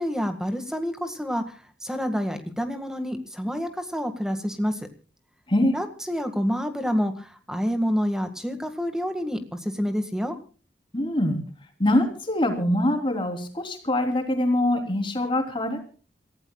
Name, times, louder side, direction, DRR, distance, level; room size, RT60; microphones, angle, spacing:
voice 1, 0.0-4.8 5.7-10.4, equal, 5° right, 7 dB, 1.8 m, -28 dB
voice 2, 10.9-11.4 11.8-15.8, left 1 dB, 30° left, 4 dB, 3.5 m, -24 dB
27.5 x 16.0 x 2.3 m, 0.38 s
head